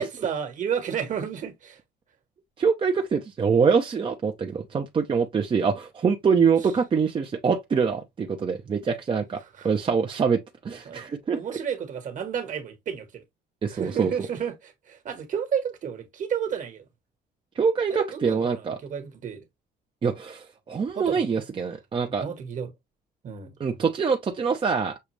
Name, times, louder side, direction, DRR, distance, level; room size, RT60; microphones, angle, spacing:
voice 1, 0.0-1.8 9.6-9.7 10.8-13.2 13.7-16.8 17.9-19.4 20.9-21.4 22.2-22.7 23.2-23.5, right 8 dB, 50° right, 1.5 m, -31 dB
voice 2, 2.6-11.4 13.6-14.1 17.5-18.8 20.0-22.2 23.6-25.0, right 5 dB, 30° right, 0.7 m, -24 dB
6.6 x 2.3 x 3.1 m
cardioid pair, 110°, 17 cm